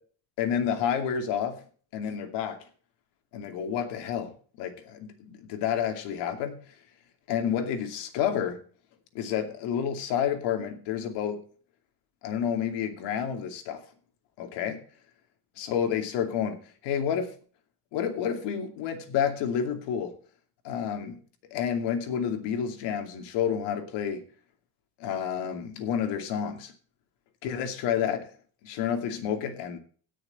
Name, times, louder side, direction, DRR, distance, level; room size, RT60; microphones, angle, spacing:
voice 1, 0.4-1.6 1.9-2.6 3.3-6.6 7.3-8.6 9.1-11.4 12.2-13.8 14.4-14.8 15.6-17.3 17.9-20.1 20.6-21.2 21.5-24.3 25.0-26.7 27.4-28.3 28.6-29.8, left 8 dB, 80° left, 2.7 m, -30 dB
17.5 x 6.6 x 4.2 m
cardioid pair, 140°, 41 cm